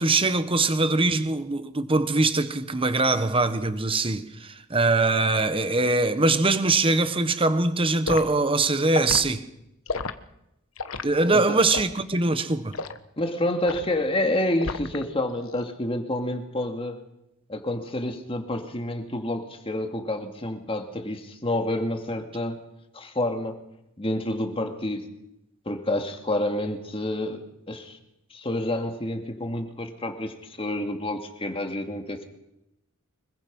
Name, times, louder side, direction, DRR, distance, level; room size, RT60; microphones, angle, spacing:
voice 1, 0.0-9.4 11.0-12.7, right 3 dB, 25° right, 1.4 m, -22 dB
Liquid, 8.1-8.3 8.9-9.2 9.9-10.1 10.8-11.1 11.7-12.0 12.7-13.0 13.7-13.9 14.6-15.0 15.4-15.6, left 4 dB, 70° left, 1.2 m, -31 dB
voice 2, 13.2-17.0 17.5-22.6 22.9-23.6 24.0-25.1 25.7-28.0 28.3-32.3, left 1 dB, 25° left, 2.4 m, -29 dB
25.0 x 22.0 x 5.5 m
head